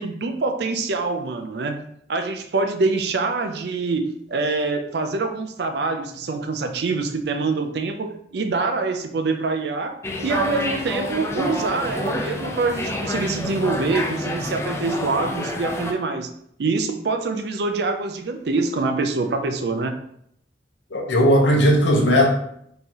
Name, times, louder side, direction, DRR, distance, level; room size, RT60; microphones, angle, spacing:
voice 1, 0.0-10.0 10.2-16.3 16.6-20.0, right 3 dB, 65° right, 0.5 m, -25 dB
sound 1, 10.0-15.9, left 1 dB, 15° left, 0.4 m, -28 dB
voice 2, 20.9-22.3, equal, 85° left, 0.9 m, -17 dB
4.4 x 3.3 x 2.8 m
head